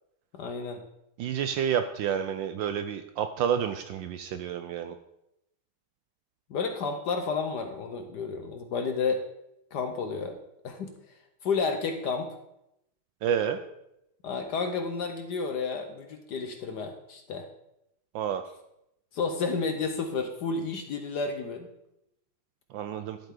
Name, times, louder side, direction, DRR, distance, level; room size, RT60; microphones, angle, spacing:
voice 1, 0.3-0.8 6.5-9.2 9.7-10.4 10.6-12.3 14.2-17.5 19.1-21.7, left 4 dB, 65° left, 6 dB, 1.2 m, -31 dB
voice 2, 1.2-5.0 13.2-13.6 18.1-18.4 22.7-23.2, right 8 dB, 75° right, 9 dB, 1.1 m, -29 dB
11.5 x 7.9 x 3.8 m, 0.83 s
omnidirectional pair, 2.4 m